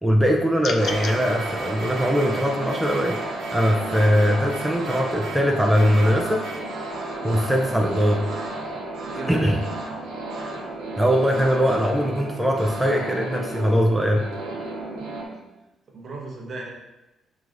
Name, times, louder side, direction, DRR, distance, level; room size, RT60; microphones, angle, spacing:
voice 1, 0.0-6.4 7.2-8.2 9.1-9.6 11.0-14.2, equal, 5° right, 0 dB, 0.4 m, -21 dB
sound 1, 0.6-1.2, left 5 dB, 65° left, 0.3 m, -31 dB
sound 2, 0.8-15.2, right 2 dB, 85° right, 0.8 m, -32 dB
voice 2, 9.1-9.6 15.9-16.7, right 2 dB, 50° right, 0 dB, 0.8 m, -35 dB
4.8 x 3.1 x 2.5 m, 1.0 s
cardioid pair, 90°, 0 cm